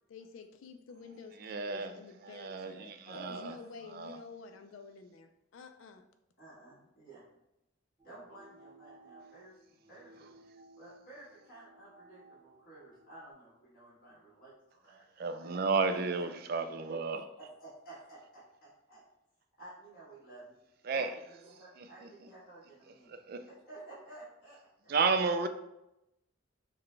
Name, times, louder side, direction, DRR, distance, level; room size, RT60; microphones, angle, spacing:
voice 1, 0.1-6.0, left 4 dB, 70° left, 0.4 m, -50 dB
voice 2, 1.4-3.5 3.9-4.2 15.2-17.3 20.8-21.2 21.8-22.1 23.1-23.5 24.9-25.5, right 4 dB, 45° right, 0.3 m, -32 dB
voice 3, 3.0-3.6 6.4-7.2 8.0-9.5 9.9-10.3 10.8-14.5 14.8-15.6 15.9-16.3 17.4-19.0 19.6-20.6 20.9-23.2 23.5-25.0, right 2 dB, 45° left, 1.5 m, -53 dB
sound 1, 8.0-13.3, right 2 dB, 15° right, 0.8 m, -59 dB
5.8 x 2.2 x 3.2 m
head